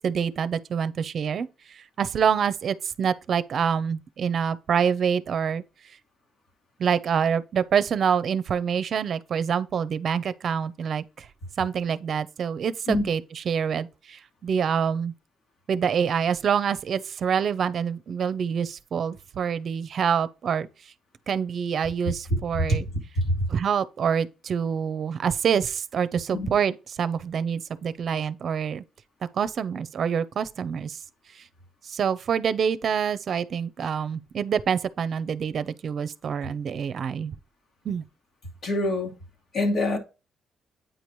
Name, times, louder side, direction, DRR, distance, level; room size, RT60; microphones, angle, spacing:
voice 1, 0.0-5.6 6.8-11.3 11.6-15.1 15.7-20.7 21.3-22.9 23.5-28.8 29.3-31.0 31.4-31.5 31.8-37.3 37.8-38.0, right 7 dB, 55° right, 0.7 m, -26 dB
voice 2, 23.2-23.5 26.3-26.5 38.6-39.1 39.5-40.0, left 1 dB, 55° left, 2.4 m, -24 dB
9.0 x 5.0 x 3.1 m
cardioid pair, 90°, 0 cm